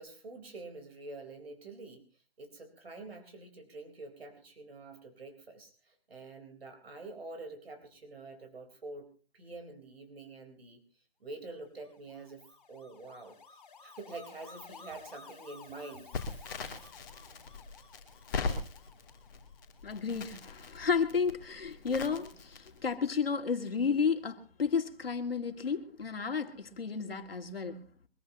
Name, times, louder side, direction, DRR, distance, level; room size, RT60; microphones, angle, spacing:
voice 1, 0.0-2.0 2.4-9.1 9.3-10.8 11.2-12.4 12.7-16.9, right 3 dB, 80° right, 4.1 m, -47 dB
sound 1, 11.6-20.9, left 4 dB, 40° left, 4.1 m, -55 dB
Crackle, 16.1-22.9, left 4 dB, 20° left, 2.8 m, -40 dB
voice 2, 19.8-27.9, left 5 dB, 70° left, 2.2 m, -32 dB
24.0 x 15.5 x 2.9 m
hypercardioid pair, 170°, 30 cm